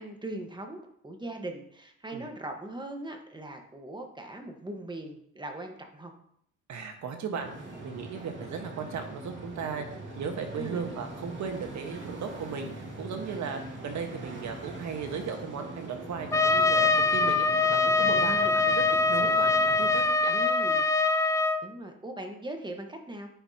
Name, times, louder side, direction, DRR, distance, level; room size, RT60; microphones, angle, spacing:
voice 1, 0.0-6.1 10.5-10.8 17.8-18.6 20.3-20.9 21.6-23.3, right 1 dB, 15° right, 4 dB, 1.3 m, -40 dB
voice 2, 6.7-18.8 19.1-20.4, right 6 dB, 70° right, 5 dB, 1.4 m, -36 dB
sound 1, 7.4-20.0, right 2 dB, 40° right, 2.3 m, -42 dB
Trumpet, 16.3-21.6, left 3 dB, 10° left, 0.4 m, -23 dB
9.5 x 6.1 x 2.9 m, 0.70 s
cardioid pair, 90°, 30 cm